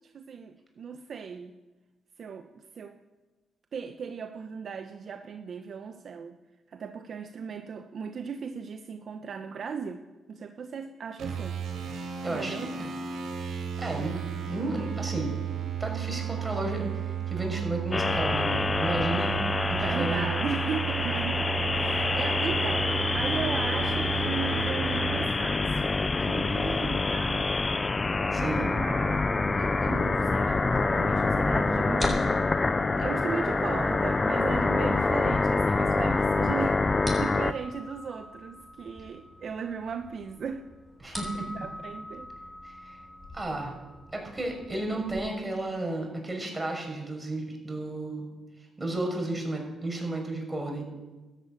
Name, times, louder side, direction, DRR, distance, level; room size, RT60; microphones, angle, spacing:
voice 1, 0.0-1.5 2.2-3.0 3.7-6.4 6.7-10.0 10.3-11.6 12.3-12.7 13.9-14.2 19.7-27.6 28.3-32.4 33.0-36.8 37.2-40.7 41.5-42.3, right 6 dB, 55° right, 6 dB, 1.0 m, -37 dB
sound 1, 11.2-25.3, right 9 dB, 75° right, 5.8 m, -33 dB
voice 2, 12.2-12.9 13.8-14.1 14.5-15.3 15.8-19.4 19.7-20.3 28.3-28.7 41.0-41.5 42.6-43.0 43.3-43.7 44.1-48.3 48.8-50.8, right 2 dB, 15° right, 1 dB, 6.0 m, -33 dB
sound 2, 17.9-37.5, left 3 dB, 25° left, 0.7 m, -26 dB
sound 3, 30.4-45.2, left 1 dB, 5° left, 7.8 m, -44 dB
13.5 x 12.0 x 9.0 m, 1.2 s
cardioid pair, 90°, 0 cm